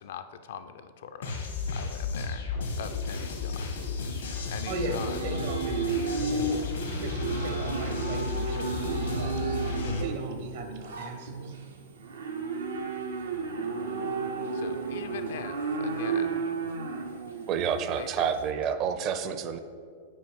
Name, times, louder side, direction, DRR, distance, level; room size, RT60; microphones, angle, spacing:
voice 1, 0.0-1.4 1.7-2.5 2.8-3.8 4.5-5.3 14.5-16.5 17.9-18.3, left 7 dB, 70° left, 9 dB, 0.4 m, -41 dB
sound 1, 1.2-10.0, left 4 dB, 85° left, 1.2 m, -33 dB
Livestock farm animals working animals, 3.7-18.4, right 4 dB, 85° right, 0.6 m, -33 dB
voice 2, 5.2-9.5 9.8-11.5, right 2 dB, 65° right, 5 dB, 0.9 m, -38 dB
voice 3, 17.5-19.6, right 7 dB, 45° right, 9 dB, 0.5 m, -29 dB
5.3 x 4.5 x 5.4 m, 2.1 s
hypercardioid pair, 105°, 0 cm